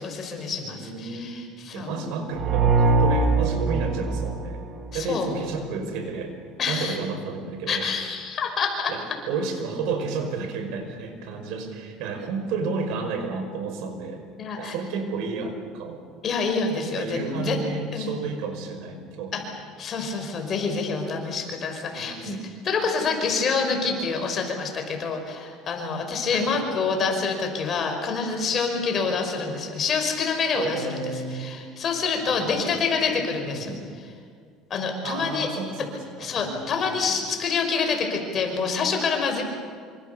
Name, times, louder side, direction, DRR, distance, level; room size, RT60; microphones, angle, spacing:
voice 1, 0.0-1.9 4.9-5.3 6.6-7.0 7.7-8.9 14.4-14.7 16.2-17.6 17.9-18.2 19.3-19.4 19.8-22.4 22.6-33.8 34.7-35.5 36.2-39.4, left 5 dB, 40° left, 4 dB, 5.3 m, -27 dB
voice 2, 0.6-1.4 1.7-4.6 4.9-6.3 6.7-7.9 8.9-14.2 14.6-16.0 17.0-19.4 21.9-22.5 26.3-26.5 28.9-29.1 30.5-31.6 32.3-32.9 33.4-33.8 35.0-37.2, right 4 dB, 75° right, 6 dB, 5.3 m, -32 dB
sound 1, 2.3-5.2, right 3 dB, 45° right, 4.5 m, -22 dB
26.5 x 25.5 x 7.0 m, 2.1 s
cardioid pair, 125°, 0 cm